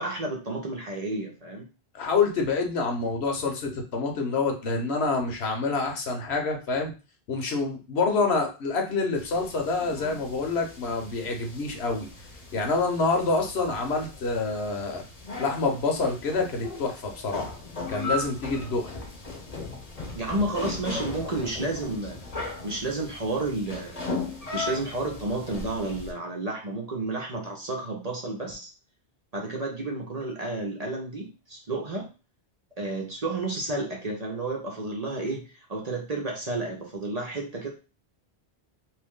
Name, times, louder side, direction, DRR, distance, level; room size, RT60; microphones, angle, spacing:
voice 1, 0.0-1.7 20.1-24.2 24.5-28.7 29.3-32.1 32.8-37.7, right 2 dB, 40° right, 0 dB, 0.7 m, -31 dB
voice 2, 1.9-6.9 7.3-12.1 12.5-15.0 15.4-17.6 17.9-19.0, left 4 dB, 70° left, 3 dB, 1.1 m, -27 dB
sound 1, 9.2-26.1, left 2 dB, 40° left, 0.8 m, -37 dB
3.0 x 2.6 x 3.6 m, 0.32 s
omnidirectional pair, 1.1 m